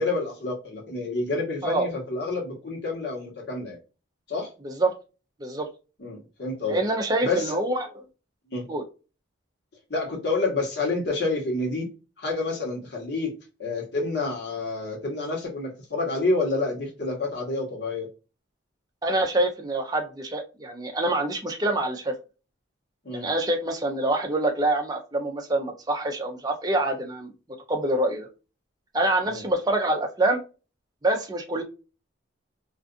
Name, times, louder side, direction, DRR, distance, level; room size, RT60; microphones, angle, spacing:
voice 1, 0.0-3.8 4.3-4.5 6.0-6.8 7.2-7.6 8.5-8.6 9.9-11.9 12.2-13.3 13.6-18.1 23.0-23.3 29.2-29.4, left 3 dB, 55° left, 1.1 m, -28 dB
voice 2, 4.6-5.0 5.4-5.7 6.7-7.9 8.7-8.8 19.0-22.1 23.1-27.3 27.7-28.3 28.9-30.4 31.0-31.6, right 2 dB, 20° right, 0.5 m, -25 dB
2.5 x 2.4 x 2.4 m
head